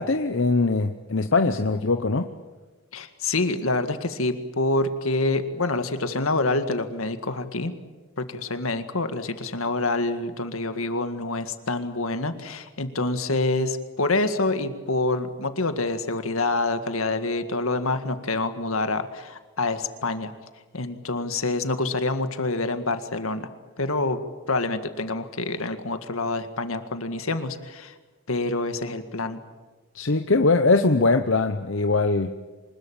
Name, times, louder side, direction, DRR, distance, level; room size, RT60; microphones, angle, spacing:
voice 1, 0.0-2.3 29.9-32.3, left 3 dB, 65° left, 7 dB, 0.9 m, -21 dB
voice 2, 2.9-7.7 8.2-20.3 20.7-23.5 23.8-24.2 24.5-27.9 28.3-29.4, left 2 dB, 85° left, 9 dB, 1.9 m, -27 dB
25.0 x 20.5 x 8.9 m, 1.3 s
head